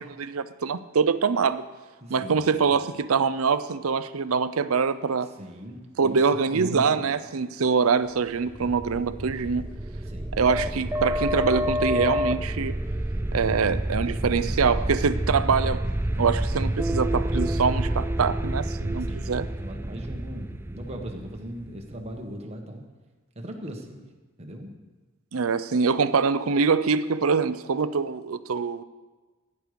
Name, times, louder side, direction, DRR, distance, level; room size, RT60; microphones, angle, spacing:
voice 1, 0.0-1.6 2.1-5.3 6.0-9.7 10.3-12.8 13.3-19.5 25.3-28.8, right 5 dB, 90° right, 14 dB, 0.6 m, -24 dB
voice 2, 2.0-2.6 5.4-6.2 6.5-7.1 10.1-10.4 19.0-22.8 23.3-24.0 24.4-24.7, equal, 30° right, 2 dB, 1.6 m, -39 dB
sound 1, 8.4-22.1, equal, 10° right, 0.4 m, -28 dB
16.0 x 9.6 x 5.2 m, 1.3 s
head